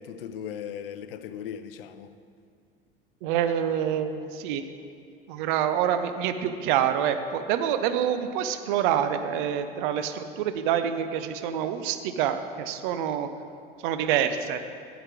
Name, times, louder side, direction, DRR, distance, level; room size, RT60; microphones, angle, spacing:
voice 1, 0.0-2.1, left 8 dB, 70° left, 0.6 m, -38 dB
voice 2, 3.2-4.6 5.3-13.3 13.8-14.6, right 9 dB, 55° right, 0.6 m, -26 dB
8.7 x 8.0 x 4.9 m
figure-of-eight pair, 75°, 30 cm